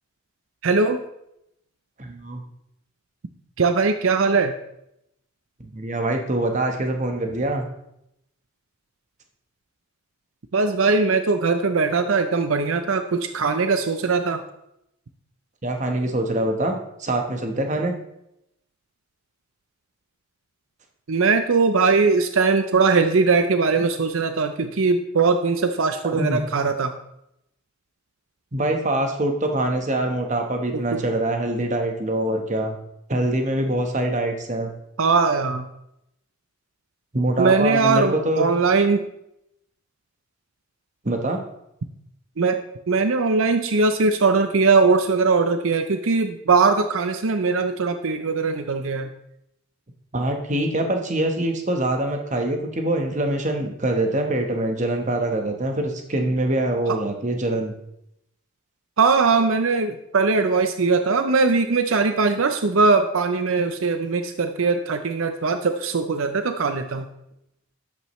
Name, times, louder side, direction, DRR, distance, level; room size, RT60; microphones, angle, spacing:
voice 1, 0.6-1.0 3.6-4.5 10.5-14.4 21.1-26.9 30.7-31.0 35.0-35.6 37.4-39.1 42.4-42.6 42.9-49.1 56.9-57.0 59.0-67.1, right 4 dB, 75° right, 8 dB, 0.6 m, -20 dB
voice 2, 2.0-2.4 5.6-7.7 15.6-17.9 26.0-26.4 28.5-32.8 33.1-34.7 37.1-38.5 41.0-41.4 50.1-57.7, right 1 dB, 35° right, 4 dB, 1.2 m, -24 dB
12.0 x 8.6 x 3.1 m, 0.81 s
head